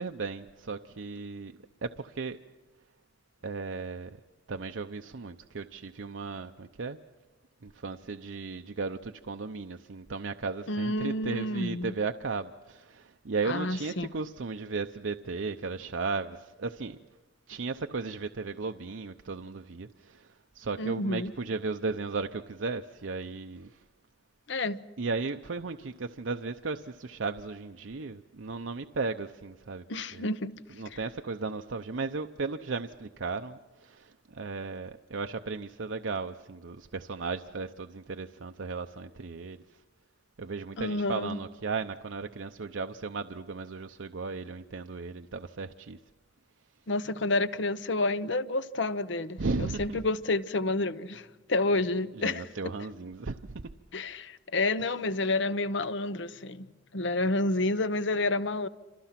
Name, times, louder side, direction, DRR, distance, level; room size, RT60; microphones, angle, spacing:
voice 1, 0.0-2.4 3.4-4.2 4.5-7.0 7.6-17.0 17.5-23.8 25.0-29.9 30.1-30.3 30.7-39.8 40.4-46.0 49.4-50.0 52.2-53.7, right 4 dB, 80° right, 0.7 m, -35 dB
voice 2, 10.7-11.9 13.5-14.1 20.8-21.3 24.5-24.8 29.9-30.6 30.9-31.0 40.8-41.4 46.9-52.4 53.9-56.7 56.9-58.7, left 2 dB, 70° left, 0.9 m, -29 dB
28.5 x 26.0 x 5.9 m
head